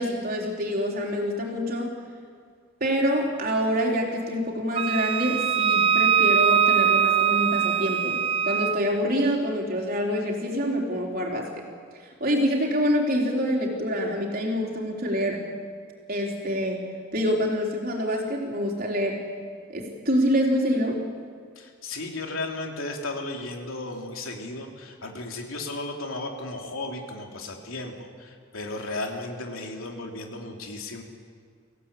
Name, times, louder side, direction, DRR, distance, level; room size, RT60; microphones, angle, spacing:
voice 1, 0.0-1.9 2.8-11.7 12.0-15.5 16.1-16.8 17.1-19.2 19.7-21.0, equal, 45° right, 0 dB, 4.0 m, -26 dB
Wind instrument woodwind instrument, 4.8-8.8, right 8 dB, 25° right, 0.5 m, -22 dB
voice 2, 21.5-31.0, left 2 dB, 85° left, 1 dB, 3.2 m, -35 dB
25.0 x 17.0 x 8.5 m, 2.1 s
head